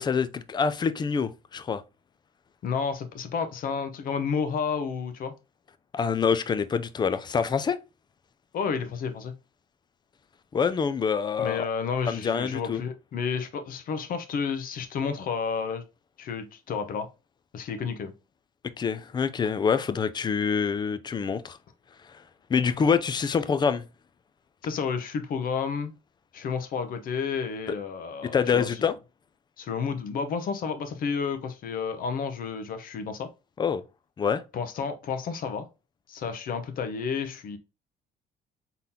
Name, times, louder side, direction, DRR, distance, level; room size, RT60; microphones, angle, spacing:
voice 1, 0.0-1.8 5.9-7.8 10.5-11.7 12.1-12.8 18.8-21.6 22.5-23.8 28.3-28.9 33.6-33.8 34.2-34.4, left 6 dB, 25° left, 0.4 m, -26 dB
voice 2, 2.6-5.3 8.5-9.3 11.4-15.8 16.2-17.1 17.5-18.1 24.6-25.9 26.3-28.9 29.6-33.3 34.5-35.7 36.1-37.6, left 6 dB, 55° left, 0.9 m, -31 dB
3.8 x 3.8 x 2.8 m
cardioid pair, 110°, 17 cm